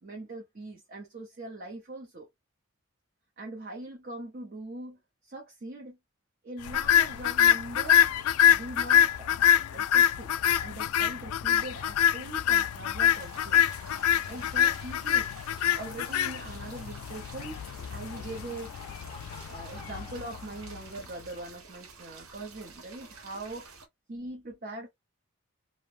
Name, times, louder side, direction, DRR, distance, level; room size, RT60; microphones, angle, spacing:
voice 1, 0.0-2.3 3.4-6.0 6.4-8.0 8.5-9.3 9.7-10.3 10.6-13.6 14.2-15.4 15.7-17.6 17.9-18.7 19.4-23.6 24.1-24.9, right 2 dB, 45° right, 0.6 m, -41 dB
sound 1, 6.7-21.0, left 10 dB, 85° left, 0.3 m, -25 dB
sound 2, 13.1-23.9, right 4 dB, 85° right, 0.7 m, -50 dB
Laughter, 18.2-21.2, left 2 dB, 25° left, 0.5 m, -51 dB
2.6 x 2.1 x 3.2 m
head